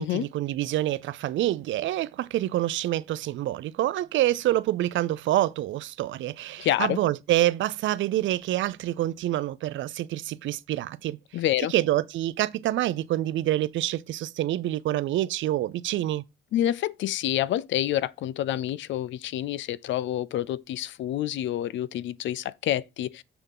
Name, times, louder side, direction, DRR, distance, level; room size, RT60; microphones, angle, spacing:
voice 1, 0.0-11.2 11.7-16.2, right 14 dB, 75° right, 0.5 m, -27 dB
voice 2, 6.6-7.0 11.3-11.7 16.5-23.2, left 12 dB, 70° left, 0.4 m, -28 dB
7.0 x 3.6 x 5.4 m
cardioid pair, 90°, 20 cm